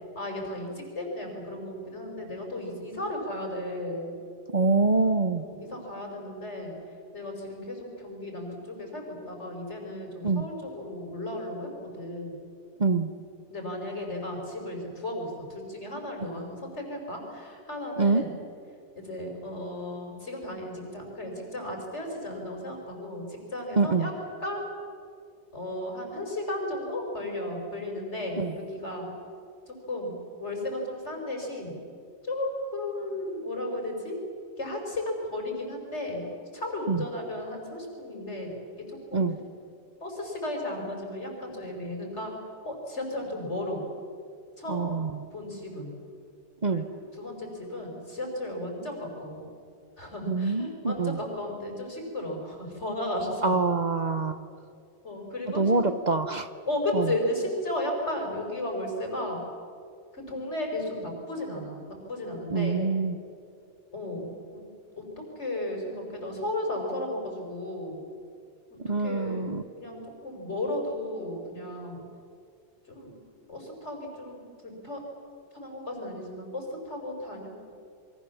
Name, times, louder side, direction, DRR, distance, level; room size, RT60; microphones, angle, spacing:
voice 1, 0.1-4.1 5.4-6.7 7.1-11.7 11.9-12.4 13.5-18.3 18.9-24.1 24.4-24.6 25.5-29.1 29.7-30.1 30.4-31.8 32.2-34.2 34.6-36.3 36.5-38.6 38.9-39.2 40.0-42.3 42.6-43.8 44.6-44.9 45.3-45.9 46.7-46.8 47.1-49.5 50.0-53.5 55.0-55.9 56.7-59.4 60.1-61.8 62.1-62.9 63.9-64.6 65.0-68.0 69.0-69.5 69.8-72.0 72.9-73.1 73.5-75.0 75.5-77.5, left 1 dB, 75° left, 1 dB, 5.1 m, -34 dB
voice 2, 4.5-5.4 10.2-10.5 12.8-13.1 18.0-18.2 23.8-24.1 28.4-28.5 36.9-37.0 39.1-39.4 44.7-45.1 46.6-46.8 50.3-51.2 53.4-54.4 55.5-56.5 56.9-57.1 62.5-63.2 68.8-69.6, right 3 dB, 40° right, 10 dB, 1.0 m, -25 dB
28.0 x 23.0 x 7.2 m, 2.4 s
omnidirectional pair, 1.2 m